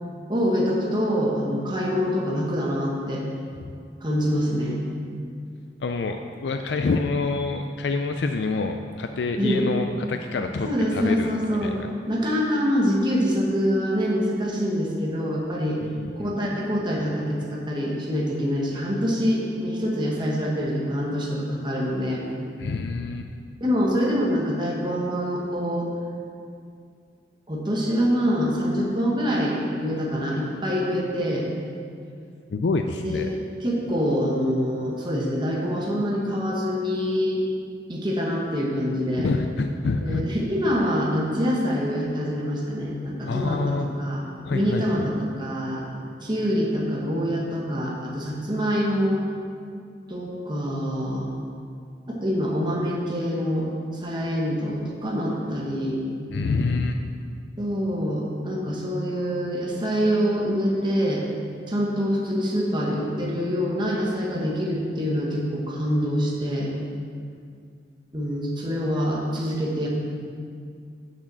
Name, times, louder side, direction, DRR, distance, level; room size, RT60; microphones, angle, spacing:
voice 1, 0.3-3.2 4.0-4.8 9.4-9.7 10.6-11.8 12.1-15.8 16.2-22.2 23.6-25.9 27.5-31.5 33.0-33.3 33.6-37.4 37.9-39.3 40.0-44.2 44.5-45.8 46.2-49.2 50.1-51.3 52.1-56.0 57.6-61.2 61.7-66.7 68.1-69.9, equal, 25° right, -3 dB, 1.2 m, -25 dB
voice 2, 5.8-11.3 11.6-11.9 15.8-16.3 22.6-23.3 32.5-33.3 39.2-40.3 43.3-43.9 44.5-45.1 56.3-57.0, left 3 dB, 75° left, 5 dB, 0.4 m, -27 dB
6.3 x 6.2 x 7.4 m, 2.3 s
head